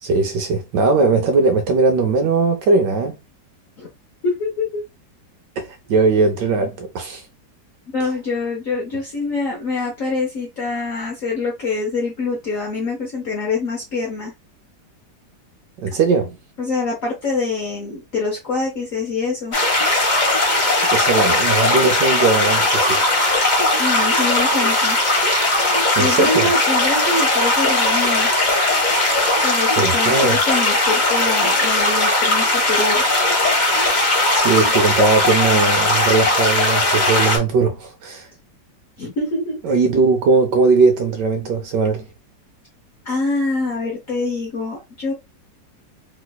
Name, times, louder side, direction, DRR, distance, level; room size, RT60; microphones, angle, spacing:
voice 1, 0.0-3.2 5.6-7.2 15.8-16.4 20.9-23.0 26.0-26.5 29.8-30.4 34.3-38.3 39.6-42.1, right 4 dB, 75° right, 1.2 m, -19 dB
voice 2, 4.2-4.8 7.9-14.3 16.6-19.6 23.8-25.0 26.0-28.3 29.4-33.0 39.0-39.6 43.0-45.1, left 3 dB, 55° left, 1.1 m, -25 dB
sound 1, 19.5-37.4, left 2 dB, 35° left, 0.9 m, -18 dB
3.1 x 3.1 x 2.3 m
omnidirectional pair, 1.9 m